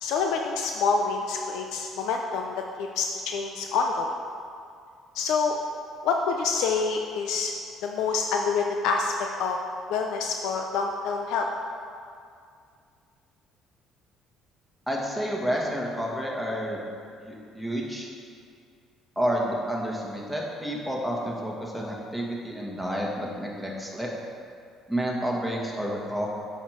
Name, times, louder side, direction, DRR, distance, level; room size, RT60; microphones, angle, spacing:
voice 1, 0.0-4.1 5.1-5.6 6.0-7.5 7.8-9.6 9.9-11.5, left 5 dB, 80° left, 3 dB, 0.5 m, -27 dB
voice 2, 14.9-16.8 17.2-18.1 19.2-24.1 24.9-26.3, equal, 5° left, -3 dB, 1.8 m, -30 dB
8.0 x 6.5 x 5.0 m, 2.3 s
cardioid pair, 90°, 0 cm